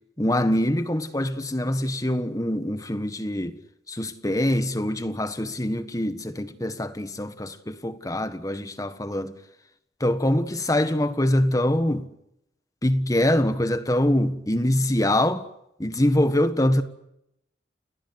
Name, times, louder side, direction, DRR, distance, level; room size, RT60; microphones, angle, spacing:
voice 1, 0.2-3.6 3.9-9.4 10.0-12.1 12.8-15.4 15.8-16.8, left 1 dB, 20° left, 1.5 m, -24 dB
29.5 x 19.0 x 8.0 m
head